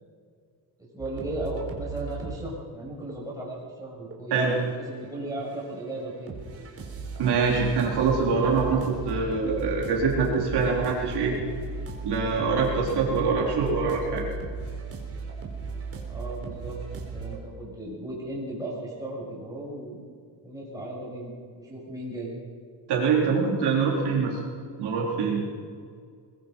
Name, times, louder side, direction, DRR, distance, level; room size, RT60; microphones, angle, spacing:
voice 1, 0.8-4.6 4.9-6.3 16.1-16.8 17.1-20.0 20.4-22.3, right 1 dB, 10° right, -4 dB, 7.1 m, -36 dB
sound 1, 1.0-2.4 3.1-3.4 4.1-5.1 5.4-17.4, right 3 dB, 30° right, 4.1 m, -37 dB
voice 2, 7.2-11.3 12.0-14.2 22.9-24.4 24.8-25.4, right 5 dB, 55° right, -2 dB, 4.2 m, -24 dB
22.5 x 22.0 x 5.5 m, 2.2 s
cardioid pair, 165°, 46 cm